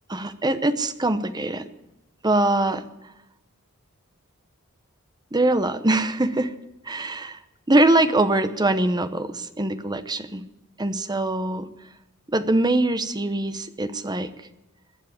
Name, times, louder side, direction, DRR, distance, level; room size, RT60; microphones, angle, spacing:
voice 1, 0.1-1.7 2.2-2.8 5.3-6.5 6.9-7.4 7.7-10.4 10.8-11.7 12.3-14.3, right 2 dB, 20° right, 11 dB, 0.8 m, -23 dB
20.5 x 7.5 x 8.5 m, 0.96 s
head